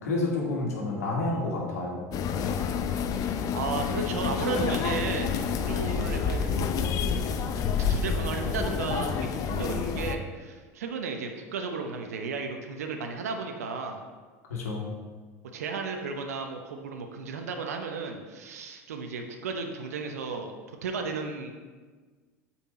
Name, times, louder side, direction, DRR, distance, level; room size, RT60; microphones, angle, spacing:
voice 1, 0.0-2.0 14.5-14.9, left 2 dB, 85° left, -2 dB, 1.7 m, -29 dB
sound 1, 2.1-10.2, left 6 dB, 45° left, 0.6 m, -28 dB
voice 2, 3.5-6.7 7.9-14.0 15.5-20.5 20.8-21.5, right 5 dB, 85° right, 4 dB, 0.8 m, -34 dB
8.4 x 4.4 x 4.2 m, 1.4 s
hypercardioid pair, 85°, 8 cm